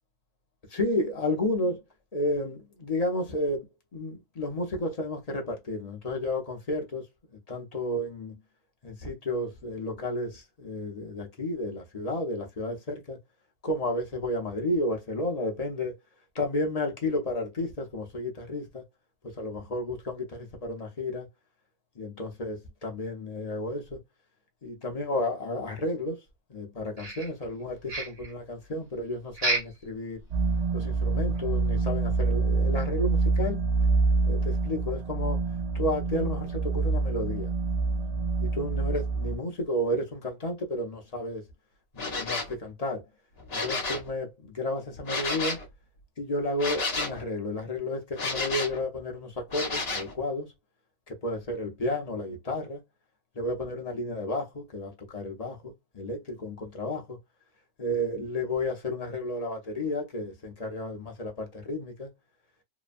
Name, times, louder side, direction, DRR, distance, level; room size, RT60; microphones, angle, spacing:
voice 1, 0.7-1.8 2.1-3.6 3.9-7.0 7.5-8.3 8.8-13.2 13.6-15.9 16.3-18.8 19.4-21.3 22.0-24.0 24.6-26.2 26.5-30.2 30.7-33.6 34.3-35.4 35.7-37.5 38.4-41.4 41.9-43.0 43.5-45.6 46.2-50.5 51.1-52.8 53.4-57.2 57.8-62.1, left 1 dB, 35° left, 0.7 m, -32 dB
sound 1, 27.0-27.6 27.9-28.3 29.3-29.9 30.2-30.3 30.8-30.9 31.3-31.4, right 2 dB, 55° right, 1.4 m, -30 dB
sound 2, 30.3-39.4, right 3 dB, 75° right, 0.3 m, -26 dB
sound 3, 42.0-42.6 43.4-44.1 45.1-45.7 46.6-47.2 48.2-48.8 49.5-50.1, left 3 dB, 55° left, 1.0 m, -31 dB
2.9 x 2.2 x 2.4 m
omnidirectional pair, 1.3 m